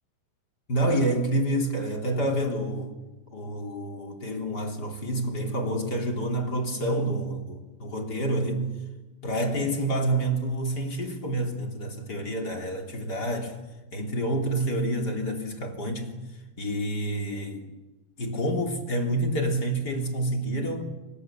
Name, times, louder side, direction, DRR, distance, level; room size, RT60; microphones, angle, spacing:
voice 1, 0.7-2.9 3.3-8.7 9.2-13.6 13.9-16.2 16.6-17.7 18.2-20.8, right 1 dB, 25° left, 2.6 m, -28 dB
29.5 x 25.0 x 7.5 m
omnidirectional pair, 6.0 m